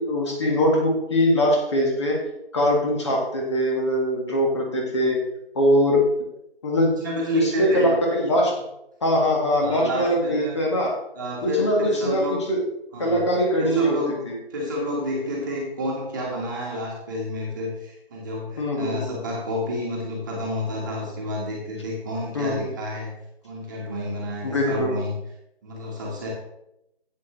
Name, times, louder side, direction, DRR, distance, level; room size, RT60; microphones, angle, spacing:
voice 1, 0.0-2.2 2.5-5.2 5.6-6.0 6.6-6.9 7.3-8.5 9.0-11.0 11.4-12.6 13.0-14.0 14.3-14.4 18.6-19.2 22.3-22.7 24.4-25.0, equal, 25° left, -1 dB, 1.9 m, -22 dB
voice 2, 7.0-7.9 9.6-10.6 11.2-12.4 12.9-13.2 13.6-14.3 14.5-23.1 23.4-25.2 25.6-26.3, left 1 dB, 20° right, -4 dB, 1.9 m, -30 dB
12.5 x 8.4 x 3.3 m, 0.84 s
figure-of-eight pair, 160°, 31 cm